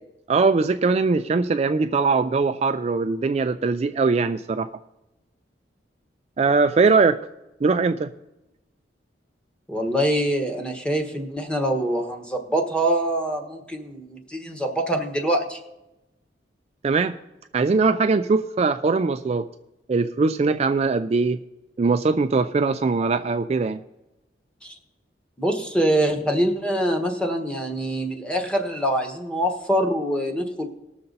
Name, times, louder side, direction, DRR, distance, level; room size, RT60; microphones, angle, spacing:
voice 1, 0.3-4.7 6.4-7.2 7.6-8.1 16.8-17.1 17.5-19.5 19.9-21.4 21.8-23.8, right 4 dB, 35° right, 9 dB, 0.3 m, -21 dB
voice 2, 9.7-15.6 24.6-24.7 25.4-30.7, right 1 dB, 5° left, 4 dB, 1.3 m, -24 dB
19.5 x 6.7 x 4.0 m, 0.97 s
head